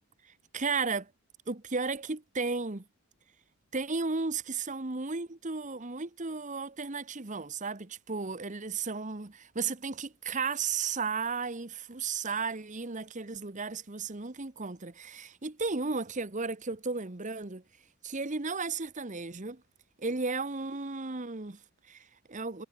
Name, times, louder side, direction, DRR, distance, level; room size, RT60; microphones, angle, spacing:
voice 1, 0.2-1.1 1.5-2.9 3.7-17.6 18.0-19.6 20.0-22.7, right 4 dB, 35° right, 1.1 m, -34 dB
head